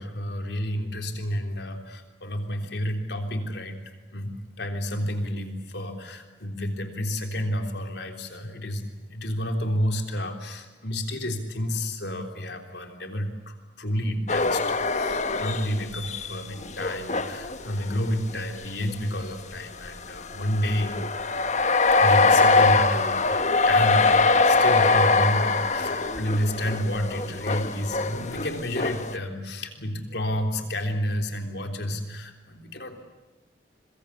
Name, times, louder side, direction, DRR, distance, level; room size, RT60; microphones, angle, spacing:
voice 1, 0.0-3.8 4.1-21.0 22.0-33.1, equal, 60° left, 5 dB, 3.5 m, -30 dB
sound 1, 14.3-18.4 18.9-19.0 19.8-29.1, left 3 dB, 40° left, 1.2 m, -23 dB
25.5 x 23.0 x 8.5 m, 1.2 s
head